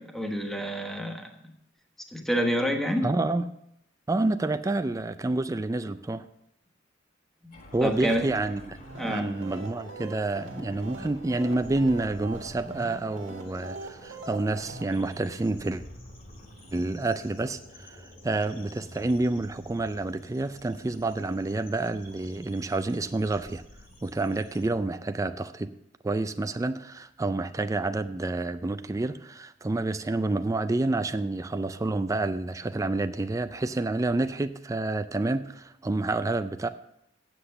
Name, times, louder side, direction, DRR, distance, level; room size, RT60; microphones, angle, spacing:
voice 1, 0.0-1.5 2.1-3.1 7.4-8.3 9.0-9.3, equal, ahead, 2 dB, 1.1 m, -28 dB
voice 2, 3.0-3.5 4.1-6.3 7.7-15.8 16.7-23.6 24.0-25.7 26.0-36.7, right 2 dB, 15° right, 10 dB, 0.4 m, -29 dB
sound 1, 7.5-24.7, left 1 dB, 45° left, 2.6 m, -49 dB
sound 2, 8.7-14.8, right 2 dB, 80° right, 1.7 m, -42 dB
8.1 x 7.8 x 6.8 m, 0.76 s
head